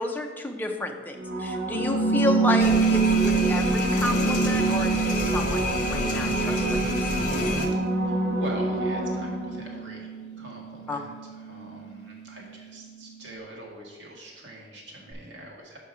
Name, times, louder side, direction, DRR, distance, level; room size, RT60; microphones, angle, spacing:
voice 1, 0.0-7.1 10.9-11.0, left 1 dB, 10° left, 3 dB, 0.5 m, -31 dB
sound 1, 1.2-9.8 15.1-15.2, right 1 dB, 60° right, 1.0 m, -28 dB
sound 2, 1.7-12.6, right 5 dB, 65° left, 0.3 m, -28 dB
sound 3, 2.6-7.7, left 1 dB, 45° left, 0.9 m, -30 dB
voice 2, 8.0-10.1 10.4-15.8, right 1 dB, 85° right, -2 dB, 1.7 m, -42 dB
5.7 x 5.6 x 4.8 m, 1.5 s
head